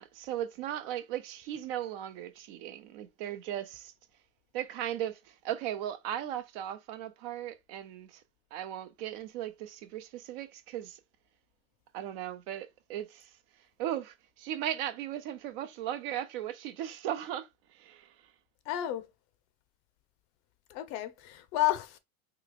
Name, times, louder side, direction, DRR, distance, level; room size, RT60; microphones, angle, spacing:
voice 1, 0.0-3.9 4.5-8.2 8.5-11.0 11.9-13.3 13.8-18.2, right 11 dB, 45° right, 0.4 m, -37 dB
voice 2, 18.7-19.1 20.7-22.0, left 15 dB, 40° left, 0.6 m, -31 dB
3.2 x 2.3 x 3.8 m
hypercardioid pair, 115°, 43 cm